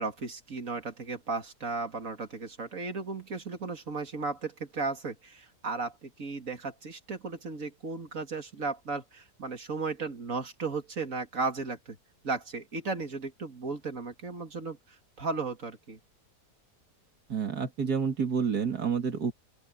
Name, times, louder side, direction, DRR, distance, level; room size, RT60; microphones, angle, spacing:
voice 1, 0.0-12.0 12.2-16.0, right 4 dB, 55° right, 2.6 m, -35 dB
voice 2, 17.3-19.3, right 6 dB, 70° right, 2.7 m, -29 dB
open air
omnidirectional pair, 1.8 m